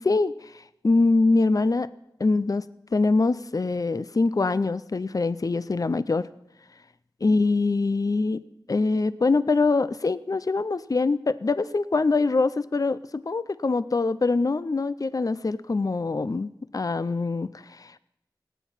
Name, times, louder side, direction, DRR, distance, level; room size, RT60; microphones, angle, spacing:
voice 1, 0.0-1.9 2.2-2.7 2.9-6.3 7.2-8.4 8.7-18.0, left 3 dB, 50° left, 16 dB, 0.4 m, -24 dB
18.0 x 9.2 x 5.7 m, 0.82 s
wide cardioid pair, 55°, 8 cm